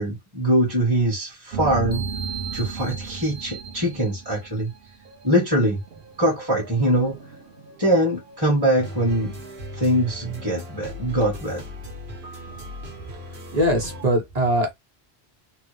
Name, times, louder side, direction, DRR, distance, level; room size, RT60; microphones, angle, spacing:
voice 1, 0.0-2.1 2.5-4.7 5.2-5.8 6.2-7.2 7.8-9.3 9.7-11.6, right 1 dB, 25° right, 1.2 m, -22 dB
sound 1, 1.5-5.5 5.9-9.1 9.4-9.6 10.0-11.0 11.4-11.5 12.2-14.1, right 5 dB, 60° right, 1.1 m, -36 dB
sound 2, 8.8-14.0, left 1 dB, 80° right, 1.4 m, -37 dB
voice 2, 13.5-14.7, equal, 40° right, 1.3 m, -21 dB
3.7 x 2.3 x 3.2 m
omnidirectional pair, 1.1 m